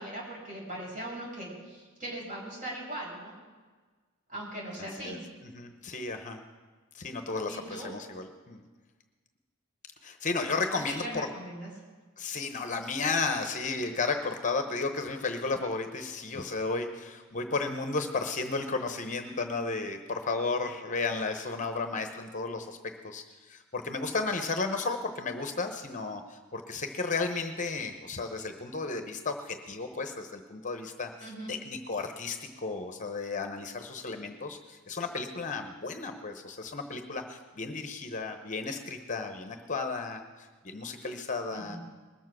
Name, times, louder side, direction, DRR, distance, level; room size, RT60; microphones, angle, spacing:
voice 1, 0.0-3.3 4.3-5.2 7.5-7.9 10.6-11.7 31.2-31.6 41.5-41.8, right 1 dB, 40° right, -3 dB, 5.4 m, -40 dB
voice 2, 5.5-6.4 6.9-8.6 10.0-11.3 12.2-41.8, left 4 dB, 35° left, 6 dB, 0.9 m, -33 dB
20.5 x 7.3 x 6.1 m, 1.4 s
head